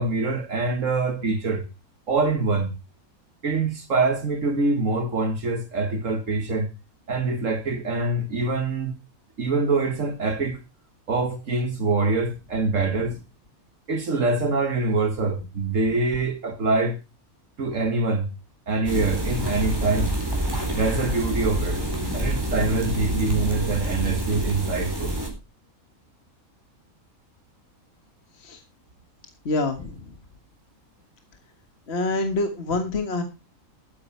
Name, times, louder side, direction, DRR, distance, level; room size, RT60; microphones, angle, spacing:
voice 1, 0.0-1.6 2.1-2.7 3.4-6.7 7.1-8.9 9.4-10.6 11.1-13.2 13.9-17.0 17.6-18.3 18.7-20.1 20.7-21.8 22.1-25.1, right 3 dB, 65° right, 1.7 m, -24 dB
sound 1, 18.8-25.3, right 1 dB, 15° right, 4.0 m, -27 dB
voice 2, 21.4-22.6 28.4-28.6 29.5-30.1 31.9-33.2, left 2 dB, 50° left, 1.8 m, -28 dB
13.5 x 9.7 x 4.5 m
omnidirectional pair, 1.5 m